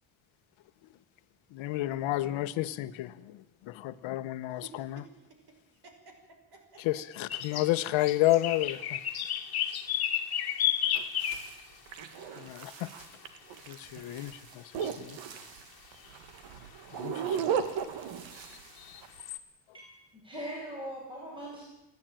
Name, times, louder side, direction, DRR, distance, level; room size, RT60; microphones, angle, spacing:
voice 1, 1.5-5.0 6.8-9.0 12.4-12.9 13.7-15.2 16.9-17.5, left 16 dB, 85° left, 13 dB, 1.1 m, -31 dB
voice 2, 4.5-5.4 5.7-6.8, right 4 dB, 55° right, 5 dB, 5.7 m, -53 dB
sound 1, 7.3-7.7 8.0-11.6 12.8-12.9 14.2-14.3 15.1-15.2 15.4-15.5 16.0-16.1 17.7-17.8 18.4-19.4, left 11 dB, 55° left, 1.8 m, -32 dB
sound 2, 10.9-19.2, right 7 dB, 80° right, 2.0 m, -36 dB
voice 3, 19.7-21.6, equal, 10° right, -4 dB, 6.1 m, -41 dB
28.5 x 11.0 x 9.0 m, 0.93 s
cardioid pair, 135°, 45 cm